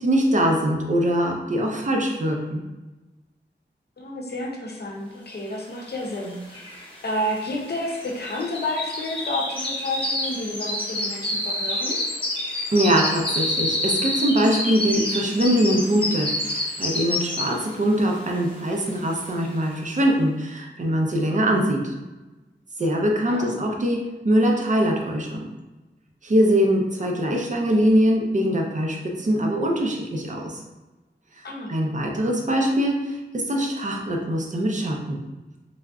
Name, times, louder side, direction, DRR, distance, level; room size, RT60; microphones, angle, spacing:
voice 1, 0.0-2.6 12.7-21.9 22.8-25.5 26.2-30.6 31.7-35.2, equal, 40° right, 1 dB, 0.6 m, -22 dB
voice 2, 4.0-6.6 7.0-12.0 23.3-23.6 27.0-27.1 31.4-31.7, left 1 dB, 60° left, -1 dB, 0.7 m, -30 dB
sound 1, 6.0-6.1 6.3-17.8 18.2-18.5 18.9-19.0, left 1 dB, 25° left, 0.8 m, -28 dB
3.3 x 2.5 x 2.3 m, 1.1 s
wide cardioid pair, 80°, 19 cm